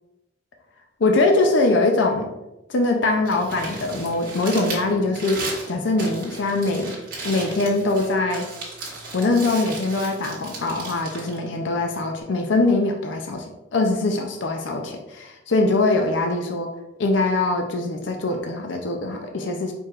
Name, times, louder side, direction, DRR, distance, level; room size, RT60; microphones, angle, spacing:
voice 1, 1.0-2.3 2.7-5.4 5.7-6.9 7.2-8.5 9.1-16.7 17.0-19.7, left 2 dB, 70° left, 3 dB, 0.5 m, -22 dB
Crumpling crinkling, 3.1-12.2, right 3 dB, 45° right, 1.3 m, -36 dB
4.6 x 4.6 x 2.4 m, 0.97 s
head